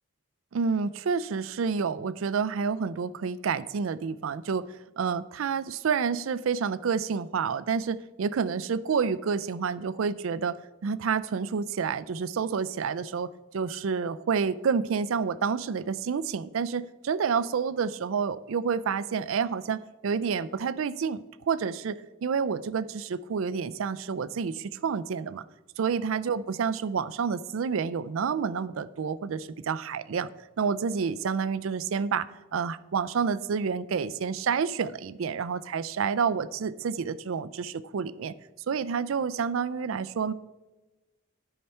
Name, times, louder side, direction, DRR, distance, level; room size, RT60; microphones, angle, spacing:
voice 1, 0.5-4.7 5.0-10.6 10.8-25.4 25.8-30.3 30.6-38.3 38.7-40.3, right 6 dB, 80° right, 15 dB, 0.4 m, -29 dB
12.5 x 5.5 x 4.4 m, 1.1 s
head